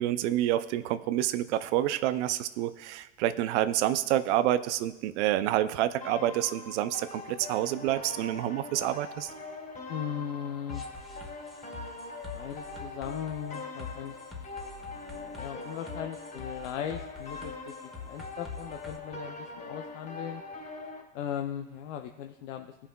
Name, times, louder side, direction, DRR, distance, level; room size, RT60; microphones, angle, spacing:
voice 1, 0.0-9.3, right 13 dB, 65° right, 12 dB, 0.5 m, -28 dB
sound 1, 6.0-21.0, left 3 dB, 25° left, 2.7 m, -42 dB
voice 2, 9.9-10.8 12.3-14.2 14.8-17.7 18.0-20.4 21.1-22.7, left 9 dB, 75° left, 5 dB, 0.6 m, -38 dB
sound 2, 10.7-19.0, left 4 dB, ahead, 1.5 m, -45 dB
16.5 x 5.6 x 2.3 m, 1.0 s
hypercardioid pair, 85°, 37 cm